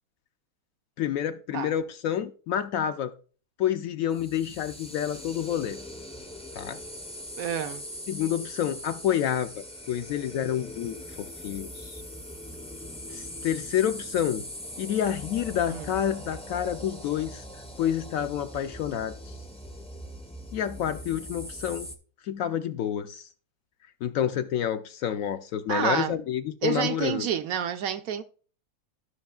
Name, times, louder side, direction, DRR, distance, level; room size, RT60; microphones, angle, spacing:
voice 1, 1.0-3.1 3.6-5.8 6.5-6.8 8.1-12.0 13.1-14.4 14.8-17.4 17.8-19.3 20.5-21.9 22.2-23.3 24.0-27.3, left 10 dB, 70° left, 0.9 m, -29 dB
sound 1, 4.1-22.0, equal, 10° left, 0.3 m, -41 dB
voice 2, 7.4-7.8 15.7-15.9 25.7-26.2 26.6-28.2, right 9 dB, 70° right, 0.9 m, -29 dB
14.5 x 6.0 x 2.3 m
omnidirectional pair, 1.7 m